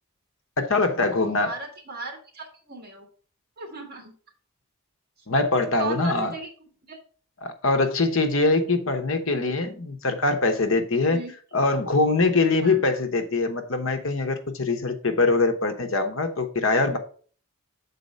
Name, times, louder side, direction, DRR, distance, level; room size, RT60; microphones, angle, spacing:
voice 1, 0.6-1.5 5.3-6.3 7.4-11.2 11.5-17.0, left 3 dB, 65° left, 1.0 m, -23 dB
voice 2, 1.3-3.1 3.6-4.1 5.8-6.5 6.9-7.0 11.1-11.3 12.6-12.9, right 3 dB, 45° right, 1.8 m, -37 dB
6.8 x 4.2 x 5.3 m
head